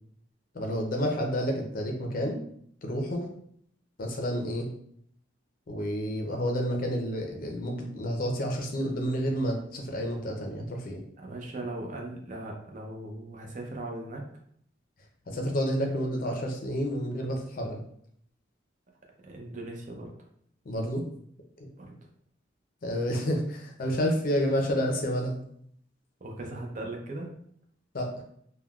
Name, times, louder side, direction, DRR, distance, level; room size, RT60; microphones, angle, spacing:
voice 1, 0.5-2.4 2.8-3.3 4.0-4.7 5.7-11.0 15.3-17.8 20.6-21.0 21.6-21.7 22.8-25.4 27.9-28.1, equal, 45° left, 2 dB, 0.5 m, -29 dB
voice 2, 11.2-14.2 19.2-20.1 21.8-21.9 26.2-27.3, right 2 dB, 40° right, 0 dB, 0.6 m, -38 dB
3.5 x 2.2 x 2.3 m, 0.65 s
head